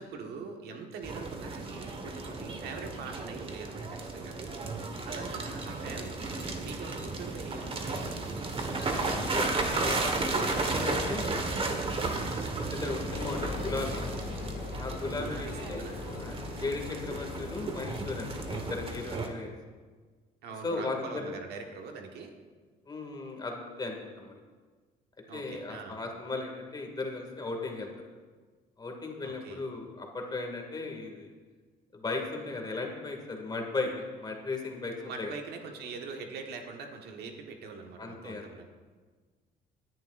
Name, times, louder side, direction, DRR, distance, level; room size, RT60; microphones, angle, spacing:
voice 1, 0.0-4.4 5.0-8.2 15.0-16.0 20.4-22.3 25.3-26.0 29.2-29.6 35.0-38.7, right 4 dB, 75° right, 3 dB, 1.5 m, -43 dB
sound 1, 1.0-19.3, right 3 dB, 35° right, 1.5 m, -34 dB
voice 2, 8.8-11.4 12.1-14.1 14.8-19.5 20.6-21.3 22.9-24.4 25.3-27.9 28.8-31.3 31.9-35.3 38.0-38.5, left 3 dB, 25° left, 2 dB, 2.3 m, -36 dB
sound 2, 13.1-19.0, left 5 dB, 90° left, 2.5 m, -40 dB
18.5 x 10.5 x 2.6 m, 1.4 s
cardioid pair, 110°, 17 cm